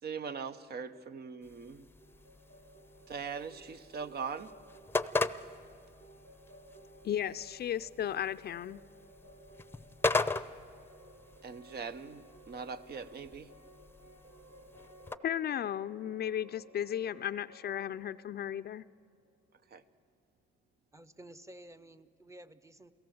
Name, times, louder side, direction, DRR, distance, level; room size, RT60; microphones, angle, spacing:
voice 1, 0.0-1.9 3.1-4.5 11.4-13.5 19.7-19.8, right 6 dB, 55° right, 0.9 m, -41 dB
sound 1, 1.4-15.2, left 3 dB, 10° left, 0.7 m, -39 dB
sound 2, 2.0-19.8, right 1 dB, 80° right, 2.0 m, -57 dB
voice 2, 7.0-8.8 15.2-18.8, left 10 dB, 55° left, 0.5 m, -35 dB
voice 3, 20.9-22.9, right 1 dB, 15° right, 0.9 m, -52 dB
29.0 x 17.0 x 7.9 m
cardioid pair, 90°, 20 cm